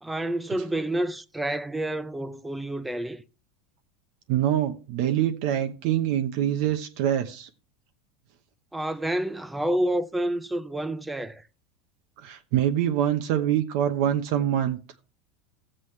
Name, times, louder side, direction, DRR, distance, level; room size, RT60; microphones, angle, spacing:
voice 1, 0.0-3.2 8.7-11.4, right 1 dB, 5° right, 0.4 m, -29 dB
voice 2, 4.3-7.5 12.2-14.8, right 11 dB, 55° right, 0.8 m, -25 dB
14.0 x 7.6 x 3.2 m
supercardioid pair, 160°, 0 cm